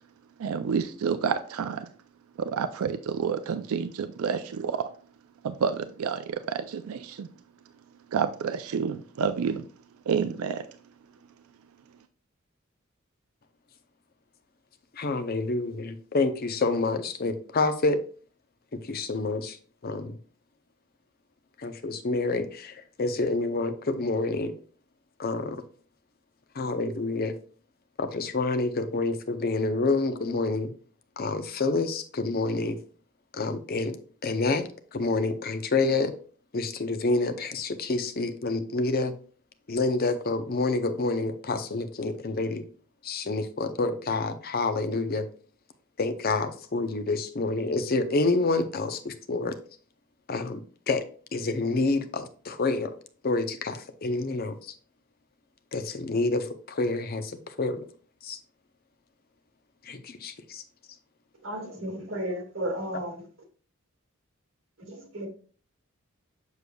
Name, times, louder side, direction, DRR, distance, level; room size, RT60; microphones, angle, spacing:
voice 1, 0.4-1.9 2.4-4.9 5.4-7.3 8.1-9.7 10.1-10.7, right 6 dB, 90° right, 11 dB, 0.4 m, -29 dB
voice 2, 14.9-18.0 18.7-19.6 19.8-20.2 21.6-24.5 25.2-25.6 26.5-27.4 28.0-30.7 31.2-32.8 33.3-34.0 34.2-34.6 34.9-36.1 36.5-39.1 39.7-42.6 43.0-45.3 46.0-49.6 50.3-51.0 51.3-53.0 53.2-54.7 55.7-57.8 58.2-58.4 59.8-60.6, left 3 dB, 45° left, 9 dB, 0.6 m, -28 dB
voice 3, 61.4-63.3 64.9-65.3, right 1 dB, 65° right, 2 dB, 1.9 m, -33 dB
6.8 x 6.4 x 2.3 m, 0.42 s
head